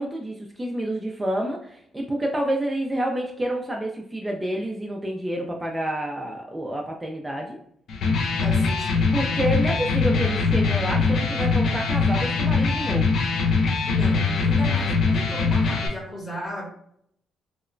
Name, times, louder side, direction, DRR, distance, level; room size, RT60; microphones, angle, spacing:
voice 1, 0.0-7.6 9.1-13.1, right 1 dB, 15° right, 0 dB, 0.4 m, -28 dB
Electric guitar, 7.9-15.9, left 4 dB, 65° left, 0.5 m, -22 dB
voice 2, 8.4-9.4 13.9-16.7, equal, 30° left, -1 dB, 1.0 m, -34 dB
2.9 x 2.0 x 2.4 m, 0.68 s
cardioid pair, 90°, 0 cm